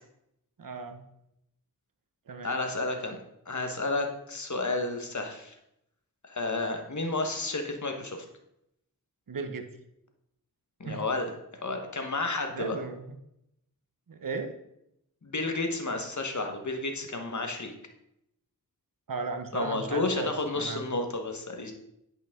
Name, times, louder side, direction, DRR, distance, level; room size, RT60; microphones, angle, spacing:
voice 1, 0.6-1.0 2.3-2.6 9.3-9.7 10.8-11.0 12.5-13.2 14.1-14.5 19.1-20.8, right 4 dB, 65° right, 7 dB, 0.8 m, -36 dB
voice 2, 2.4-3.2 3.5-5.5 6.2-8.2 10.8-11.3 11.6-12.8 15.2-17.7 19.5-21.7, left 2 dB, 55° left, 4 dB, 1.2 m, -31 dB
8.8 x 5.3 x 3.6 m, 0.81 s
wide cardioid pair, 40°, 36 cm